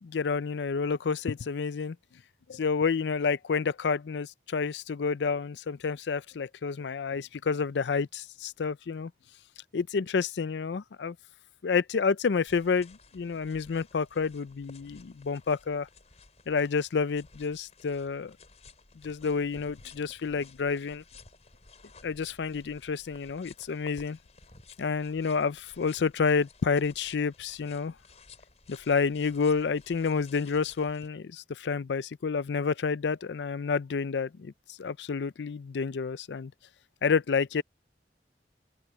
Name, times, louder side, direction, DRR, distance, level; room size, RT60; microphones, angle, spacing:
voice 1, 0.0-2.0 2.5-9.1 9.7-11.1 11.6-15.9 16.5-18.3 19.0-21.0 22.0-24.2 24.8-27.9 28.7-36.5 37.0-37.6, left 5 dB, 85° left, 0.5 m, -29 dB
sound 1, 12.5-31.1, left 4 dB, 40° left, 5.2 m, -55 dB
open air
head